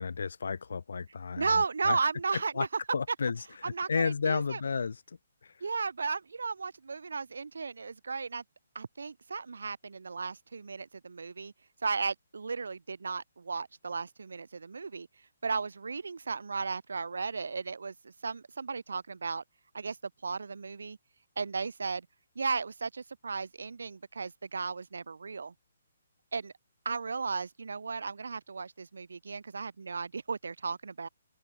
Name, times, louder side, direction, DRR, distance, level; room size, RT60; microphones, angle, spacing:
voice 1, 0.0-2.0 2.5-2.7 2.9-5.0 5.4-5.5, left 5 dB, 70° left, 1.7 m, -32 dB
voice 2, 1.4-2.7 3.1-3.2 3.6-4.6 5.6-8.4 8.7-11.5 11.8-15.1 15.4-19.4 19.7-20.0 20.2-21.0 21.4-22.1 22.4-25.5 26.3-26.5 26.9-31.1, right 4 dB, 90° right, 0.5 m, -35 dB
open air
hypercardioid pair, 175°, 0 cm